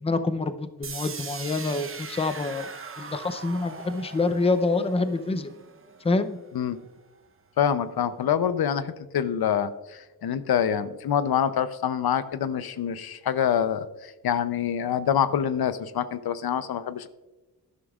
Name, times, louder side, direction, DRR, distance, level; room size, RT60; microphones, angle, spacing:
voice 1, 0.0-5.5 6.0-6.4, left 3 dB, 15° left, 10 dB, 0.6 m, -27 dB
sound 1, 0.8-6.8, right 5 dB, 35° right, 0.8 m, -41 dB
voice 2, 7.6-17.1, left 8 dB, 70° left, 13 dB, 0.7 m, -26 dB
11.5 x 11.0 x 2.4 m, 1.1 s
cardioid pair, 85°, 40 cm